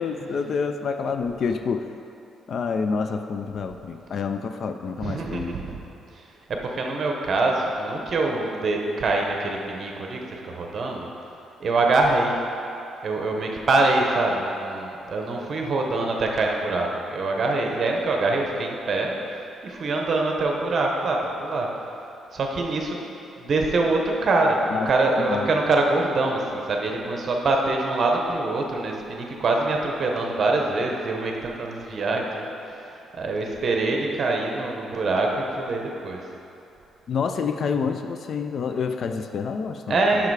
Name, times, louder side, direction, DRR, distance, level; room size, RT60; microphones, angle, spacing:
voice 1, 0.0-1.9 2.5-5.5 24.7-24.9 25.2-25.5 37.1-40.2, left 5 dB, 50° left, 7 dB, 0.3 m, -28 dB
voice 2, 5.0-5.8 6.1-11.1 11.6-12.4 13.0-21.7 22.3-23.0 23.4-36.2 39.9-40.3, right 2 dB, 45° right, 1 dB, 0.9 m, -24 dB
6.6 x 5.8 x 4.8 m, 2.8 s
cardioid pair, 135°, 0 cm